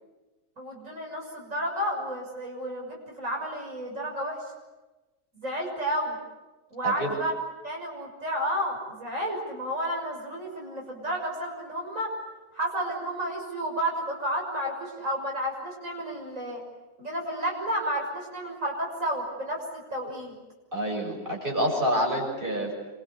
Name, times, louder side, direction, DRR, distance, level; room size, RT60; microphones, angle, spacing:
voice 1, 0.6-4.4 5.3-6.2 6.7-7.3 7.6-12.1 12.5-16.6 17.0-20.4, right 1 dB, 75° right, 0 dB, 7.0 m, -31 dB
voice 2, 20.7-22.7, equal, 40° right, 1 dB, 7.5 m, -27 dB
28.0 x 25.5 x 8.3 m, 1.1 s
omnidirectional pair, 1.4 m